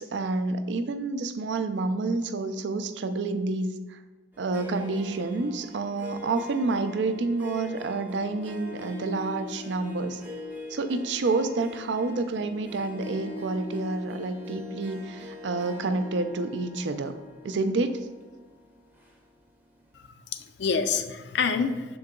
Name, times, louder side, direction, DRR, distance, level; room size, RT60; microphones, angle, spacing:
voice 1, 0.0-4.0 4.4-10.2 10.7-17.2 17.4-18.1, right 3 dB, 80° right, 10 dB, 0.4 m, -29 dB
Harp, 4.3-19.7, left 2 dB, 10° right, 0.6 m, -43 dB
voice 2, 19.9-22.0, left 5 dB, 75° left, 8 dB, 0.4 m, -28 dB
6.6 x 3.9 x 3.6 m, 1.2 s
head